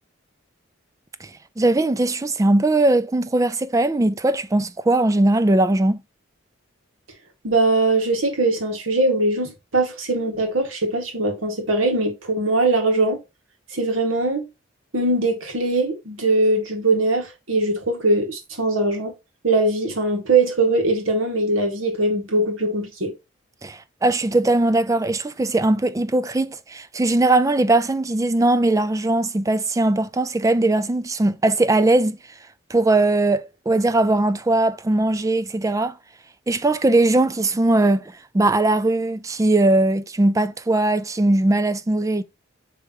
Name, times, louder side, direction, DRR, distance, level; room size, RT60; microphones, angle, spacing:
voice 1, 1.6-6.0 23.6-32.2 32.7-36.0 36.5-38.0 38.3-42.2, right 2 dB, 15° right, 0.4 m, -19 dB
voice 2, 7.4-13.2 13.7-14.5 14.9-19.1 19.4-23.1, right 2 dB, 80° right, 2.0 m, -21 dB
9.5 x 3.4 x 3.0 m
head